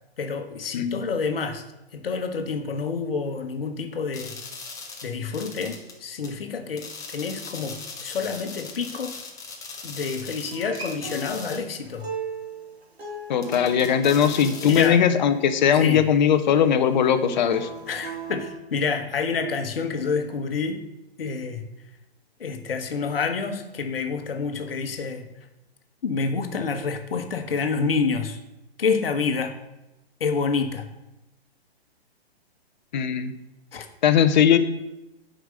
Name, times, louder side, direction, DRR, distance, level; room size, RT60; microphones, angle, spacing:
voice 1, 0.2-1.6 1.9-4.4 5.0-9.2 9.8-12.1 14.6-15.0 15.7-16.0 17.9-20.8 21.2-21.6 22.4-25.3 26.0-28.4 28.8-29.5 30.2-30.9 33.7-33.9, left 5 dB, 65° left, 7 dB, 1.3 m, -28 dB
sound 1, 4.1-6.0 6.2-6.3 6.8-11.7 11.9-12.0 13.4-14.9, left 4 dB, 10° left, 1.0 m, -39 dB
Acoustic guitar, 10.5-15.7 17.3-18.5, right 4 dB, 75° right, 3.0 m, -38 dB
voice 2, 13.3-17.7 32.9-33.3 34.0-34.6, left 8 dB, 45° left, 10 dB, 0.9 m, -19 dB
7.8 x 5.2 x 6.5 m, 0.94 s
figure-of-eight pair, 125°, 32 cm